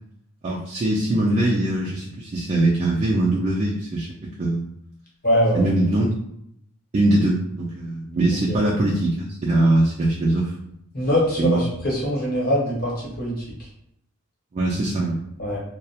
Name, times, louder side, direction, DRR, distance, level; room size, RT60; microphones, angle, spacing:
voice 1, 0.4-4.6 5.5-6.1 6.9-10.5 11.4-11.6 14.5-15.2, right 1 dB, 35° right, -3 dB, 0.3 m, -22 dB
voice 2, 5.2-5.7 8.5-8.6 10.9-13.7 15.4-15.6, equal, 45° left, -5 dB, 1.0 m, -23 dB
2.3 x 2.0 x 2.7 m, 0.75 s
head